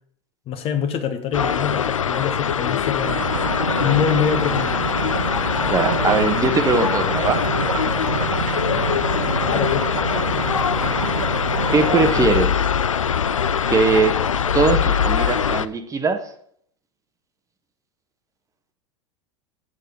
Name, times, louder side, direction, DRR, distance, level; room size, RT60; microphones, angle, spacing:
voice 1, 0.5-3.2 3.8-4.8 9.4-9.9, left 8 dB, 35° left, 1.4 m, -24 dB
sound 1, 1.3-15.7, left 7 dB, 85° left, 0.4 m, -22 dB
sound 2, 3.0-12.4, right 6 dB, 80° right, 0.7 m, -28 dB
voice 2, 5.7-7.4 11.7-12.7 13.7-14.2 14.5-16.2, right 4 dB, 20° right, 1.2 m, -20 dB
8.0 x 6.8 x 6.8 m
figure-of-eight pair, 90°, 16 cm